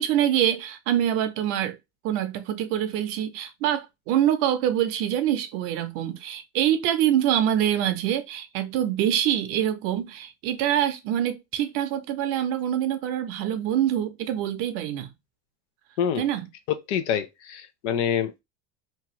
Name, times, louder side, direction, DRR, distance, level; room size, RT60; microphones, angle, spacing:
voice 1, 0.0-1.8 2.0-15.1 16.2-16.5, right 11 dB, 45° right, 0.5 m, -25 dB
voice 2, 16.7-18.4, left 8 dB, 90° left, 0.7 m, -26 dB
2.8 x 2.4 x 2.9 m
cardioid pair, 175°, 33 cm